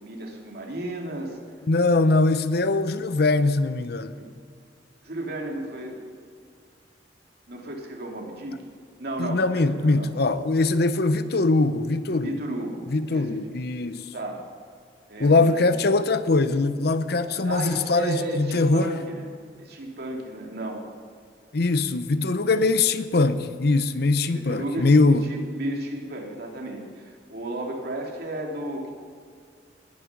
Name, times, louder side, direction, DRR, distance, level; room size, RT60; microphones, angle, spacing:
voice 1, 0.0-1.4 4.1-4.3 5.0-6.1 7.5-8.6 9.0-10.1 12.2-12.8 13.1-13.4 14.1-14.4 15.1-15.7 17.4-19.3 19.6-20.8 24.3-28.9, right 1 dB, 65° right, 2.6 m, -33 dB
voice 2, 1.7-4.1 9.2-12.4 12.9-14.1 15.2-18.9 21.5-25.3, left 3 dB, 65° left, 0.7 m, -22 dB
20.0 x 10.5 x 6.0 m
head